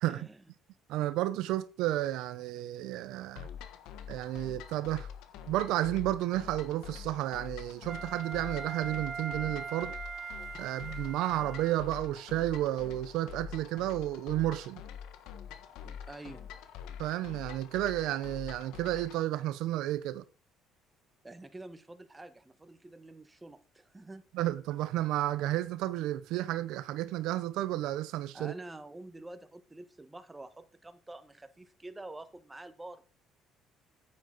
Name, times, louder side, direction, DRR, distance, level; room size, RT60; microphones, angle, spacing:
voice 1, 0.1-0.4 15.8-16.5 21.2-24.2 28.3-33.0, right 2 dB, 15° right, 1.4 m, -47 dB
voice 2, 0.9-3.5 4.1-5.1 5.5-9.9 10.6-14.8 17.0-20.2 24.3-28.5, right 14 dB, 80° right, 0.6 m, -32 dB
sound 1, 3.4-19.2, left 8 dB, 85° left, 1.3 m, -46 dB
Wind instrument woodwind instrument, 7.9-12.2, right 5 dB, 45° right, 2.1 m, -41 dB
9.2 x 8.8 x 4.0 m
cardioid pair, 100°, 0 cm